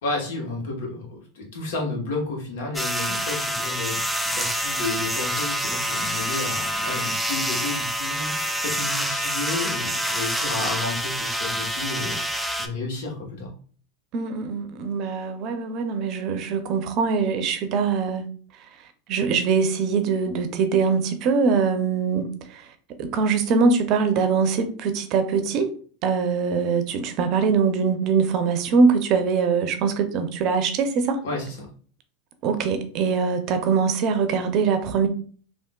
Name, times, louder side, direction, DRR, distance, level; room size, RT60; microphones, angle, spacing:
voice 1, 0.0-8.4 8.6-13.5 31.2-31.7, left 3 dB, 75° left, 1.2 m, -31 dB
sound 1, 2.7-12.7, equal, ahead, 0.4 m, -27 dB
voice 2, 14.1-18.3 19.1-22.7 23.0-25.7 26.0-31.2 32.4-35.1, right 5 dB, 50° right, 0.5 m, -22 dB
3.5 x 2.4 x 2.3 m
hypercardioid pair, 110°, 0 cm